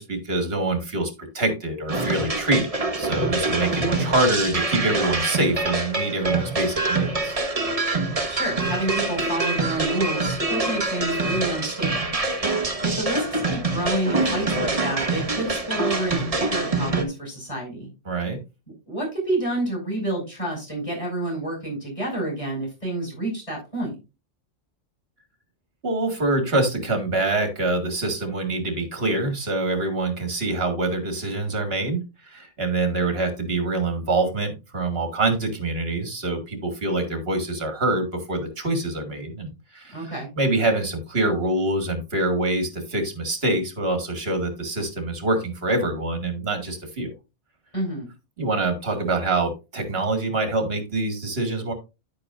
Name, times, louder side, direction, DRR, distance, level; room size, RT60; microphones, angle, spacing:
voice 1, 0.0-7.4 18.1-18.4 25.8-40.1 40.4-47.1 48.4-51.7, right 2 dB, 55° right, 6 dB, 2.2 m, -25 dB
sound 1, 1.9-17.0, right 2 dB, 30° right, 1.4 m, -25 dB
voice 2, 8.3-12.5 12.8-17.9 18.9-24.0 39.9-40.3 47.7-48.1, right 1 dB, 25° left, -1 dB, 6.1 m, -29 dB
10.5 x 8.4 x 2.5 m, 0.27 s
omnidirectional pair, 1.2 m